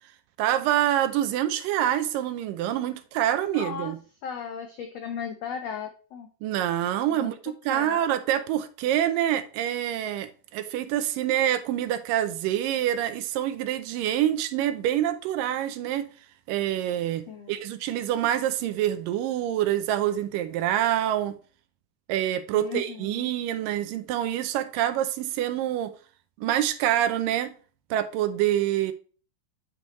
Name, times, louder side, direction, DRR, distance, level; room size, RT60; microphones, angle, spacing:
voice 1, 0.4-4.0 6.4-16.1 16.5-21.4 22.1-25.9 26.4-27.5 27.9-28.9, right 12 dB, 80° right, 2.3 m, -26 dB
voice 2, 3.4-3.9 4.2-6.3 7.0-7.4 7.7-8.0 17.3-17.5 22.5-23.3, left 7 dB, 85° left, 1.4 m, -36 dB
9.2 x 5.3 x 3.1 m
omnidirectional pair, 4.0 m